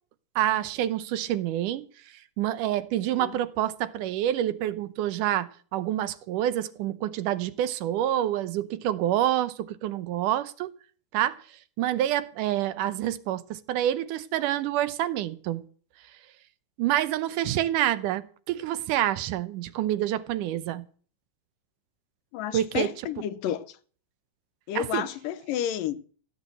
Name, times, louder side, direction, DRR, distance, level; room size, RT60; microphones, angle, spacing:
voice 1, 0.4-1.8 2.4-10.7 11.1-11.4 11.8-15.6 16.8-20.8 22.5-22.9 24.8-25.0, right 12 dB, 80° right, 2.3 m, -27 dB
voice 2, 22.3-23.8 24.7-26.0, left 11 dB, 85° left, 2.7 m, -31 dB
16.0 x 8.4 x 7.8 m
omnidirectional pair, 3.8 m